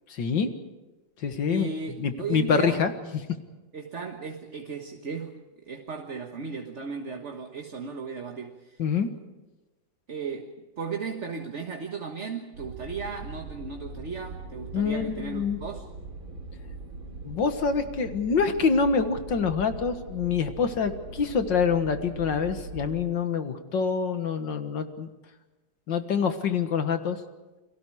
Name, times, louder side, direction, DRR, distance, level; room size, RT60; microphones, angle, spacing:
voice 1, 0.1-0.5 1.2-1.7 2.0-2.9 8.8-9.1 14.7-15.6 17.2-25.1 25.9-27.2, left 5 dB, 65° left, 8 dB, 2.2 m, -26 dB
voice 2, 1.5-2.8 3.7-8.8 10.1-15.8, right 5 dB, 40° right, 4 dB, 1.6 m, -36 dB
sound 1, 12.5-23.0, right 3 dB, 75° right, 4.0 m, -41 dB
30.0 x 23.0 x 4.8 m, 1.1 s
omnidirectional pair, 2.1 m